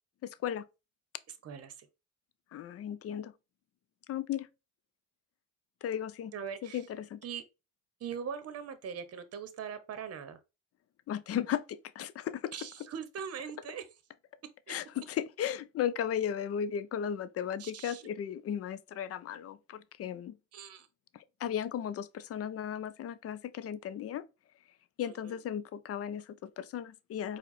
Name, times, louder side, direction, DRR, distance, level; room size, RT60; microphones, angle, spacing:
voice 1, 0.2-0.7 2.5-3.3 4.1-4.5 5.8-6.3 6.6-7.2 11.1-12.6 14.7-20.4 21.1-24.3 25.0-27.4, left 9 dB, 50° left, 0.4 m, -36 dB
voice 2, 1.4-1.9 6.3-6.8 7.2-7.4 8.0-10.4 12.5-13.8 17.6-18.1 20.5-20.9 25.0-25.4, right 7 dB, 55° right, 0.8 m, -41 dB
4.5 x 2.1 x 4.0 m
cardioid pair, 90°, 30 cm